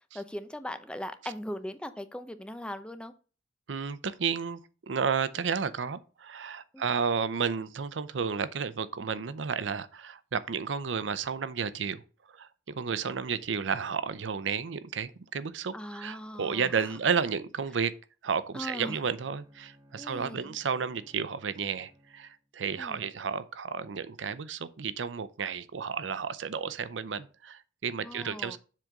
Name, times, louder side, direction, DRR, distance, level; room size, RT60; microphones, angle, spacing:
voice 1, 0.1-3.1 6.7-6.8 15.7-16.7 18.5-19.0 20.0-20.5 22.8-23.0 28.0-28.6, left 1 dB, 5° left, 0.5 m, -39 dB
voice 2, 3.7-12.0 12.3-12.5 12.7-17.9 18.2-28.6, right 6 dB, 90° right, 0.6 m, -32 dB
Bowed string instrument, 18.4-22.5, equal, 15° right, 1.0 m, -60 dB
7.5 x 3.7 x 6.4 m
head